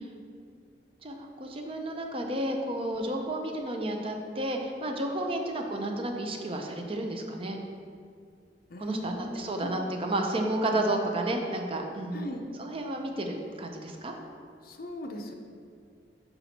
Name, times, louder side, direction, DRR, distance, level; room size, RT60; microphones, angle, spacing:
voice 1, 1.0-7.6 8.8-12.3 12.6-14.1, right 1 dB, 30° right, 3 dB, 0.5 m, -31 dB
voice 2, 8.7-9.7 12.1-12.4 14.6-15.3, left 1 dB, 55° left, 2 dB, 0.6 m, -39 dB
5.8 x 4.1 x 4.1 m, 2.2 s
head